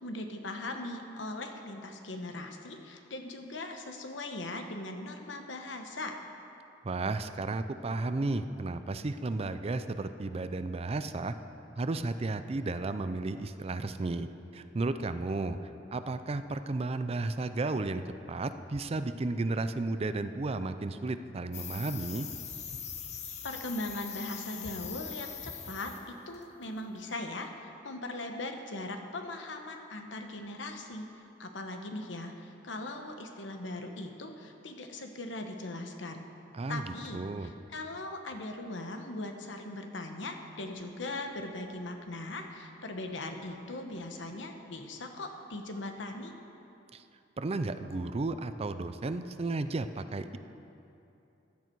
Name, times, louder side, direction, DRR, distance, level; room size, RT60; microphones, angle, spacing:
voice 1, 0.0-6.2 23.4-36.3 36.7-46.4, left 2 dB, 75° left, 5 dB, 1.1 m, -40 dB
voice 2, 6.8-11.3 11.8-14.3 14.5-15.6 15.9-22.3 36.5-36.8 37.1-37.5 46.9-47.0 47.4-50.4, right 2 dB, 35° right, 11 dB, 0.4 m, -33 dB
sound 1, 21.5-26.1 26.3-26.6, left 7 dB, 40° left, 1.0 m, -42 dB
15.0 x 10.5 x 4.6 m, 2.8 s
head